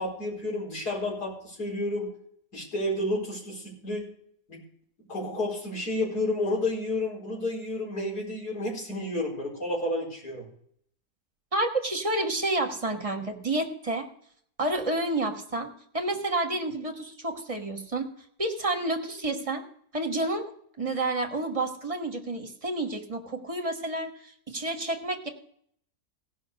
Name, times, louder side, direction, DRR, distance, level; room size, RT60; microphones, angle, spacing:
voice 1, 0.0-2.1 2.5-4.0 4.5-4.6 5.1-10.5, left 1 dB, 90° left, -4 dB, 5.1 m, -31 dB
voice 2, 11.5-14.1 14.6-18.1 18.4-19.6 19.9-20.5 20.8-25.3, right 2 dB, 25° right, 4 dB, 1.2 m, -29 dB
16.5 x 5.8 x 6.4 m, 0.64 s
omnidirectional pair, 1.7 m